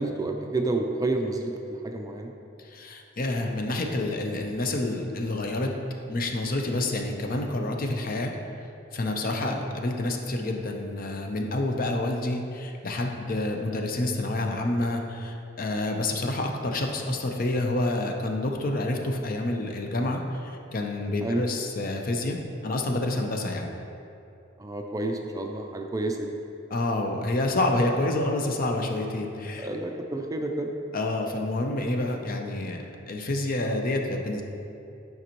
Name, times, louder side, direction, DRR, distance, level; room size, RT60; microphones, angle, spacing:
voice 1, 0.0-2.3 9.4-9.6 21.2-21.4 24.6-26.3 29.6-30.7, right 2 dB, 20° right, 3 dB, 0.4 m, -30 dB
voice 2, 2.6-5.7 6.0-8.3 8.9-23.7 26.7-29.7 30.9-34.4, left 2 dB, 45° left, 3 dB, 0.6 m, -28 dB
9.6 x 5.2 x 3.0 m, 2.7 s
head